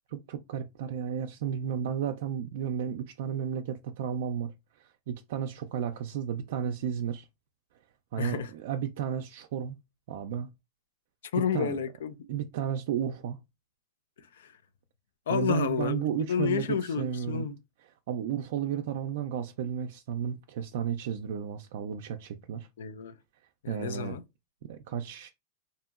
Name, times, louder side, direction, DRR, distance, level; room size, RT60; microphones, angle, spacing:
voice 1, 0.1-7.3 8.1-9.8 10.1-10.5 11.5-11.8 12.3-13.4 15.3-17.5 18.1-22.7 23.7-24.2 24.7-25.3, right 8 dB, 70° right, 0.3 m, -33 dB
voice 2, 8.2-8.5 11.3-12.2 14.2-14.6 15.3-17.5 22.8-23.2 23.6-24.2, left 7 dB, 80° left, 0.4 m, -30 dB
2.8 x 2.6 x 2.4 m
supercardioid pair, 130°, 0 cm